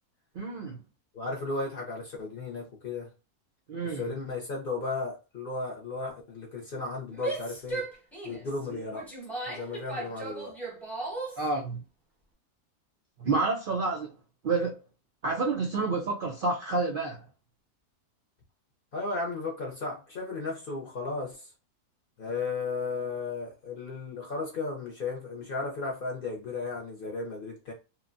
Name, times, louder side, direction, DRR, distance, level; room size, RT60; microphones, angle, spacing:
voice 1, 0.3-0.8 3.7-4.1 8.7-8.8 11.4-11.8 13.2-14.1 14.4-14.8 15.2-17.3, right 3 dB, 80° right, 0.4 m, -29 dB
voice 2, 1.1-3.1 3.8-7.9 8.2-9.1 9.5-10.5 18.9-21.5 22.2-27.7, left 3 dB, 55° left, 0.6 m, -35 dB
Female speech woman speaking / Yell, 7.1-11.5, right 3 dB, ahead, 0.5 m, -37 dB
3.0 x 2.1 x 2.5 m
omnidirectional pair, 1.6 m